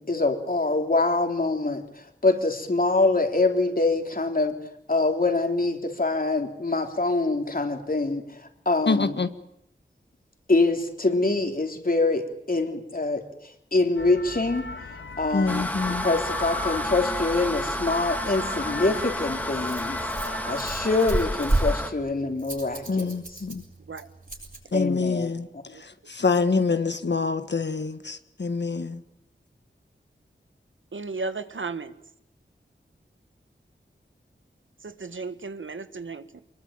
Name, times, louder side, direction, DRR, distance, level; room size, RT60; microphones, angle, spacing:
voice 1, 0.0-4.5 4.9-8.2 8.6-9.1 10.5-14.7 15.2-15.6 16.0-23.1 24.7-25.3, left 3 dB, 45° left, 5 dB, 3.5 m, -25 dB
voice 2, 8.9-9.3 15.3-16.0 22.9-23.6 24.7-29.0, left 4 dB, 60° left, 10 dB, 1.4 m, -26 dB
sound 1, 14.0-21.6, left 3 dB, 80° left, 1.6 m, -37 dB
sound 2, 15.5-21.9, equal, 10° left, 2.6 m, -31 dB
Rattle, 18.8-24.6, right 1 dB, 45° right, 7.4 m, -32 dB
voice 3, 30.9-31.9 34.8-36.4, right 4 dB, 80° right, 12 dB, 1.4 m, -34 dB
24.5 x 21.5 x 8.9 m, 0.74 s
wide cardioid pair, 80°, 20 cm